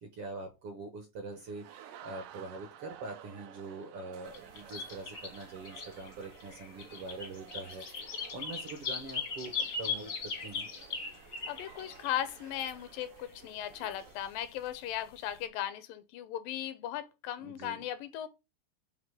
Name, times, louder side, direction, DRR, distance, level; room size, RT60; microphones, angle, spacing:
voice 1, 0.0-7.8 8.1-10.7 17.4-17.8, right 3 dB, 65° right, 1.5 m, -44 dB
sound 1, 1.4-14.2, right 10 dB, 80° right, 2.4 m, -53 dB
sound 2, 4.3-12.8 13.1-13.4 13.7-14.6 14.9-15.4, left 5 dB, 65° left, 1.0 m, -40 dB
voice 2, 11.5-18.3, left 11 dB, 85° left, 2.4 m, -37 dB
7.6 x 2.9 x 4.8 m
omnidirectional pair, 3.9 m